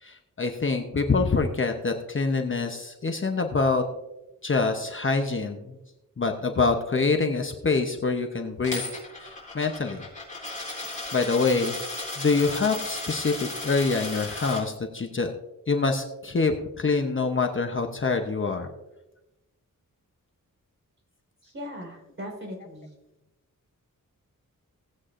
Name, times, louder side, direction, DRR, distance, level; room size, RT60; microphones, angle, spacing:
voice 1, 0.0-3.8 4.4-5.8 6.2-8.8 9.2-10.0 10.5-10.8 11.1-11.8 12.2-15.3 15.7-18.7, left 4 dB, 35° left, 4 dB, 0.8 m, -25 dB
Coin (dropping), 8.6-14.6, left 2 dB, 20° left, 3.8 m, -35 dB
voice 2, 21.4-22.9, equal, 35° right, -1 dB, 4.1 m, -39 dB
17.5 x 8.2 x 2.5 m, 1.0 s
wide cardioid pair, 125°, 33 cm